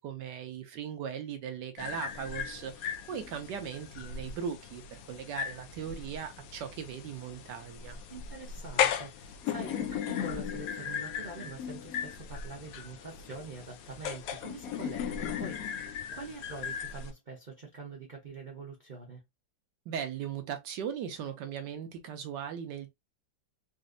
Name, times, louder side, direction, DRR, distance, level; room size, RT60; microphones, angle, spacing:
voice 1, 0.0-8.0 19.9-22.9, right 8 dB, 70° right, 1.2 m, -38 dB
sound 1, 1.8-17.1, left 8 dB, 80° left, 0.8 m, -37 dB
voice 2, 8.1-19.2, right 3 dB, 45° right, 0.6 m, -45 dB
4.1 x 2.5 x 2.5 m
omnidirectional pair, 2.1 m